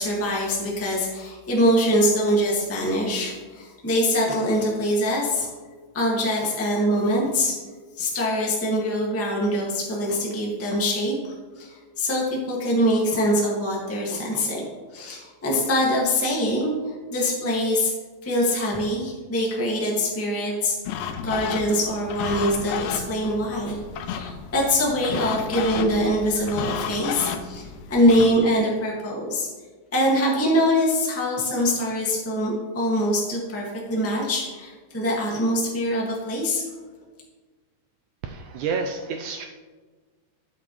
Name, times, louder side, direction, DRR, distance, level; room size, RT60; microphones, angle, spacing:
voice 1, 0.0-5.5 5.9-7.6 8.0-14.6 14.9-17.9 18.2-20.8 21.2-23.8 24.1-29.5 29.9-36.6, equal, 15° left, -3 dB, 0.5 m, -23 dB
sound 1, 20.9-28.3, left 7 dB, 85° left, 1.8 m, -32 dB
voice 2, 38.2-39.4, right 5 dB, 85° right, 4 dB, 1.7 m, -29 dB
12.5 x 7.8 x 3.1 m, 1.4 s
omnidirectional pair, 4.1 m